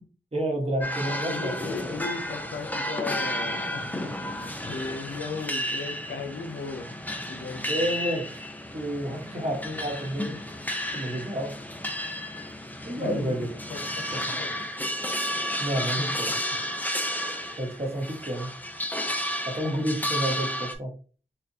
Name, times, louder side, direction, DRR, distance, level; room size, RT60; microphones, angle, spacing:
voice 1, 0.3-1.7 7.7-8.3 8.7-10.4 10.9-11.5 12.8-13.5 15.6-16.3 17.6-18.5 19.5-20.9, right 1 dB, 35° right, 1 dB, 1.2 m, -30 dB
sound 1, 0.8-20.7, equal, 10° left, 0.6 m, -32 dB
voice 2, 1.0-6.9 7.3-7.9 12.9-14.6 15.8-16.4 17.0-17.2, left 4 dB, 85° left, 5 dB, 0.6 m, -37 dB
4.3 x 2.4 x 2.7 m, 0.38 s
cardioid pair, 45°, 19 cm